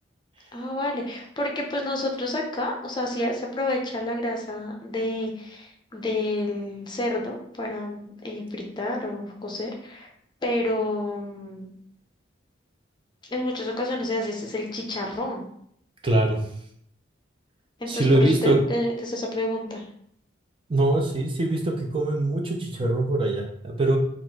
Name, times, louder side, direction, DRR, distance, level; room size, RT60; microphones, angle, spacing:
voice 1, 0.5-10.1 10.4-11.7 13.3-15.4 17.8-19.8, left 1 dB, 25° left, 1 dB, 0.6 m, -29 dB
voice 2, 16.0-16.4 17.9-18.6 20.7-24.0, right 2 dB, 25° right, 1 dB, 0.5 m, -22 dB
4.2 x 2.5 x 4.4 m, 0.69 s
head